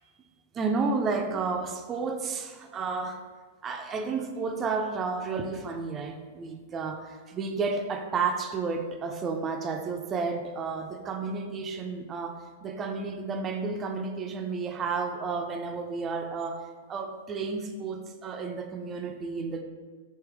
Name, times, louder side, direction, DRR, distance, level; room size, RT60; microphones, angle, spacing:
voice 1, 0.5-3.2 3.6-19.6, right 4 dB, 25° right, 5 dB, 0.3 m, -32 dB
3.6 x 2.7 x 3.4 m, 1.5 s
figure-of-eight pair, 100°, 0 cm